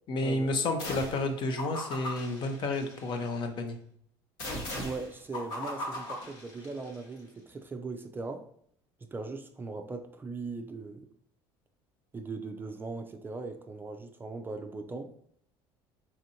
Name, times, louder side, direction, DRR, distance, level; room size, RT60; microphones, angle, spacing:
voice 1, 0.1-3.8, left 2 dB, 50° left, 6 dB, 0.6 m, -31 dB
sound 1, 0.8-1.3 1.6-3.3 4.4-7.0, left 1 dB, 70° left, 1.0 m, -39 dB
voice 2, 4.8-8.4 9.0-11.1 12.1-15.1, right 3 dB, 20° right, 6 dB, 0.4 m, -39 dB
4.3 x 2.5 x 2.7 m, 0.64 s
supercardioid pair, 95°, 10 cm